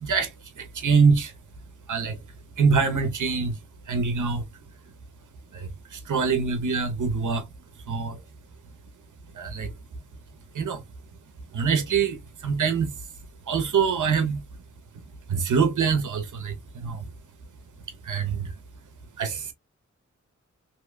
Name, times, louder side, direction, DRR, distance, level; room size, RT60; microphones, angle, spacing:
voice 1, 0.0-1.3 1.9-2.2 2.6-3.6 3.9-4.4 5.5-7.5 7.9-8.2 9.3-9.7 10.5-10.8 11.5-12.9 13.5-14.4 14.9-15.0 15.3-17.1 18.0-18.5 19.2-19.5, right 5 dB, 80° right, 0.9 m, -24 dB
2.9 x 2.8 x 2.3 m
cardioid pair, 60°, 30 cm